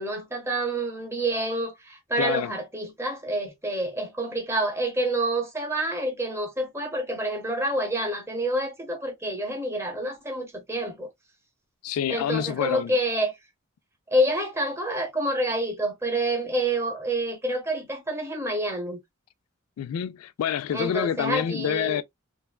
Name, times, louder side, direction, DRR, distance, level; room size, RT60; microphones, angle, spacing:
voice 1, 0.0-11.1 12.1-13.3 14.1-19.0 20.7-22.0, right 1 dB, 10° right, 0.8 m, -28 dB
voice 2, 2.2-2.5 11.8-12.9 19.8-22.0, left 9 dB, 90° left, 0.3 m, -27 dB
3.3 x 2.2 x 2.3 m
head